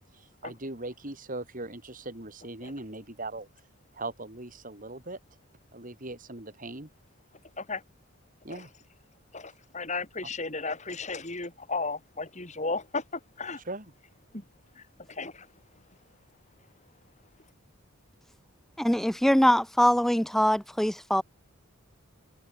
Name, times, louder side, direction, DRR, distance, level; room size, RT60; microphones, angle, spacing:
voice 1, 0.1-3.5 3.9-5.2 5.7-6.9 8.4-8.7 13.6-13.9, right 2 dB, 40° right, 2.9 m, -39 dB
voice 2, 9.3-13.6 14.3-14.4 14.8-15.5, left 3 dB, 30° left, 4.0 m, -35 dB
voice 3, 18.8-21.2, equal, ahead, 0.3 m, -23 dB
head